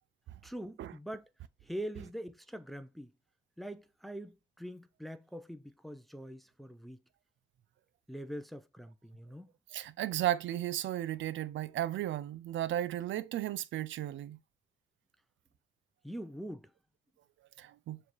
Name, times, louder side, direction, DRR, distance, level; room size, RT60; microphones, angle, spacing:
voice 1, 0.4-1.3 1.6-3.1 3.6-7.0 8.1-9.5 16.0-16.7, equal, ahead, 0.7 m, -43 dB
voice 2, 9.7-14.4 17.6-18.0, right 13 dB, 75° right, 0.7 m, -34 dB
7.0 x 3.5 x 4.7 m
cardioid pair, 90°, 20 cm